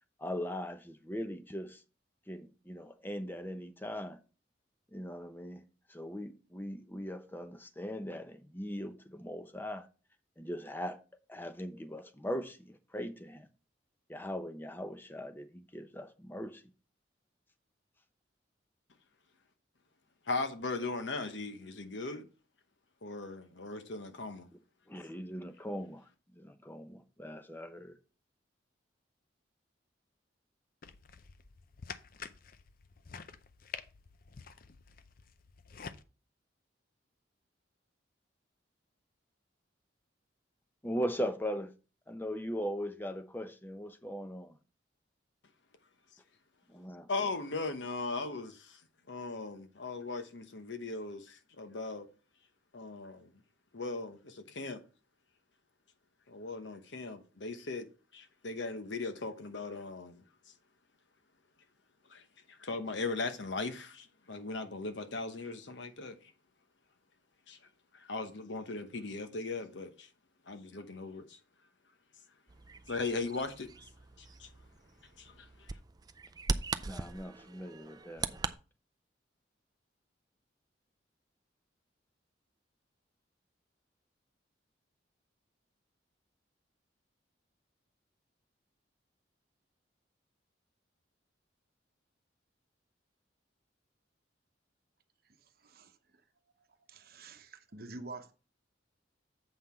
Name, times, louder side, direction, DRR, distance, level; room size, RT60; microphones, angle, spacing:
voice 1, 0.2-1.8 2.3-4.2 4.9-5.6 5.9-9.9 10.4-11.0 11.3-13.5 14.1-16.6 24.9-26.1 26.3-28.0 40.8-41.7 42.1-44.6 46.7-47.3 76.8-78.5, equal, 10° left, 0.7 m, -40 dB
voice 2, 20.3-22.3 23.0-24.5 47.1-48.8 49.1-52.1 52.7-53.3 53.7-54.8 56.3-57.9 58.1-60.2 62.1-62.2 62.5-66.2 67.5-67.6 67.9-70.1 70.5-71.4 72.9-73.7 74.2-74.5 75.2-75.7, left 3 dB, 75° left, 1.0 m, -38 dB
sound 1, 30.8-36.0, left 6 dB, 50° left, 0.5 m, -48 dB
Bird vocalization bird call bird song, 72.5-78.5, right 4 dB, 20° right, 0.4 m, -40 dB
voice 3, 95.2-96.2 96.9-98.3, right 3 dB, 55° right, 0.9 m, -48 dB
7.8 x 5.7 x 4.4 m
head